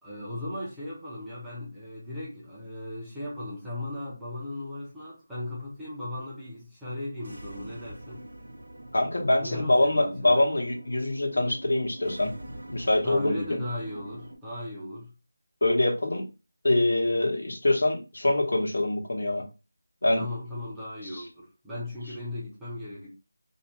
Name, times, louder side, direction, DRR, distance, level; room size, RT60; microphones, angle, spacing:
voice 1, 0.0-8.3 9.4-10.5 13.0-15.1 20.1-23.1, left 1 dB, ahead, 0.4 m, -37 dB
sound 1, 7.2-14.4, right 1 dB, 70° right, 0.8 m, -44 dB
voice 2, 8.9-12.3 12.7-13.6 15.6-16.3 16.6-19.4 20.0-20.2 21.1-21.2, left 1 dB, 70° left, 0.9 m, -24 dB
2.5 x 2.1 x 3.0 m
figure-of-eight pair, 180°, 0 cm